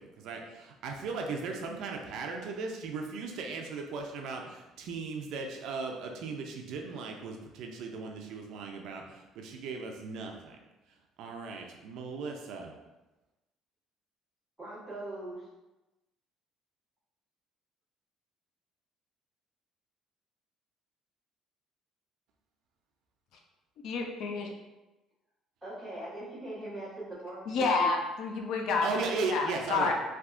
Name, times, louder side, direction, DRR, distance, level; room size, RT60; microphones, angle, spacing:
voice 1, 0.0-10.6 11.2-12.7 28.8-29.9, right 4 dB, 60° right, 2 dB, 0.4 m, -37 dB
voice 2, 14.6-15.5 25.6-27.9, right 2 dB, ahead, -11 dB, 1.2 m, -40 dB
voice 3, 23.8-24.5 27.5-29.9, left 4 dB, 55° left, 2 dB, 0.3 m, -29 dB
3.4 x 2.7 x 2.4 m, 1.1 s
cardioid pair, 180°, 0 cm